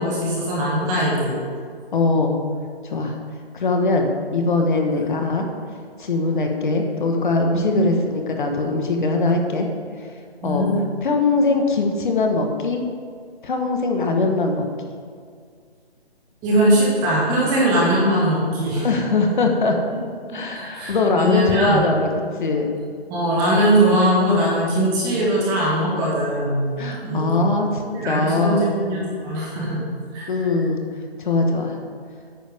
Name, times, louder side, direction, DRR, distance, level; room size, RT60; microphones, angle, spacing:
voice 1, 0.0-1.3 5.0-5.1 7.6-7.8 10.4-10.7 16.4-18.9 20.5-21.8 23.1-26.7 27.0-27.4 27.9-29.8 30.1-30.4, right 1 dB, 10° right, -5 dB, 1.6 m, -20 dB
voice 2, 1.9-2.4 2.8-3.1 3.5-5.5 6.0-9.7 10.0-10.1 10.4-10.7 11.0-12.8 13.4-14.6 17.8-18.0 18.8-19.8 20.3-22.7 23.8-24.0 25.0-25.2 26.8-28.7 30.3-30.8 31.2-31.8, left 3 dB, 50° left, 3 dB, 1.3 m, -21 dB
10.0 x 9.3 x 3.5 m, 2.1 s
hypercardioid pair, 165°, 32 cm